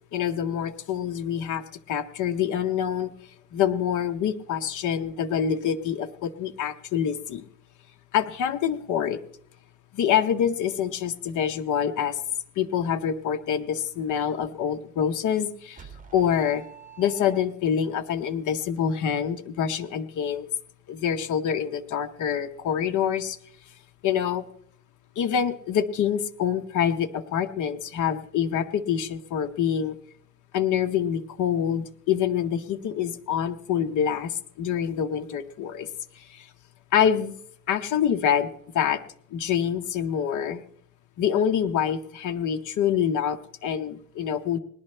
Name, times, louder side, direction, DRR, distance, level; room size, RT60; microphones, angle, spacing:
voice 1, 0.1-3.1 3.5-7.4 8.1-9.2 9.9-12.2 12.6-16.6 17.0-20.5 20.9-23.4 24.0-24.4 25.2-29.9 30.5-35.9 36.1-36.5 36.9-37.3 37.7-38.5 38.7-39.0 39.3-40.6 41.2-44.6, left 8 dB, 80° left, 8 dB, 0.9 m, -26 dB
sound 1, 15.8-17.9, right 8 dB, 25° right, 1.8 m, -47 dB
20.0 x 11.5 x 3.3 m, 0.66 s
cardioid pair, 90°, 30 cm